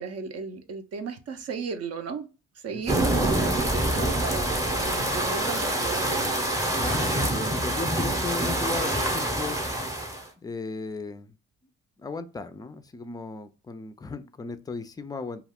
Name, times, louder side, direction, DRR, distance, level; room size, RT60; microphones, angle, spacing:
voice 1, 0.0-2.3 2.6-6.9 7.3-7.5, right 5 dB, 55° right, 0.6 m, -35 dB
voice 2, 2.7-3.3 6.8-9.6 10.4-11.4 11.6-11.7 12.0-15.5, left 4 dB, 15° left, 0.3 m, -36 dB
sound 1, 2.9-10.2, right 1 dB, 10° right, 0.7 m, -26 dB
2.3 x 2.3 x 3.4 m
cardioid pair, 90°, 30 cm